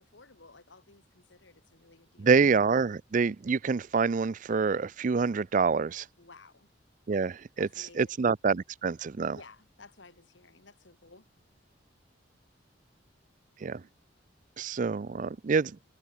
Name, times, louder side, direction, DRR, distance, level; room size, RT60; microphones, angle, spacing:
voice 1, 0.0-2.4 6.2-6.7 7.6-8.1 9.3-11.2, left 3 dB, 75° left, 2.3 m, -55 dB
voice 2, 2.2-6.0 7.1-9.4 13.6-13.8 14.6-15.7, right 5 dB, 45° right, 0.4 m, -26 dB
head